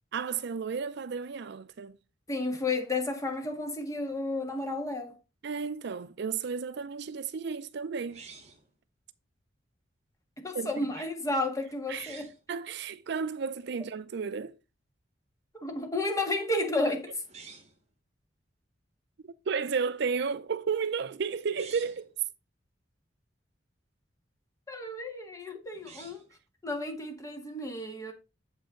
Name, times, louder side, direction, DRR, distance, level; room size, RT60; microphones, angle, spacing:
voice 1, 0.1-2.0 5.4-8.2 10.5-10.7 11.9-14.5 19.2-22.1, right 5 dB, 65° right, 0.5 m, -33 dB
voice 2, 2.3-5.2 10.4-12.3 15.5-17.2 24.7-26.3 26.6-28.1, left 2 dB, 20° left, 1.6 m, -32 dB
sound 1, 8.1-8.7 11.9-12.4 17.2-17.8 21.4-22.1 25.7-26.4, right 5 dB, 35° right, 1.5 m, -49 dB
7.8 x 5.4 x 3.7 m
head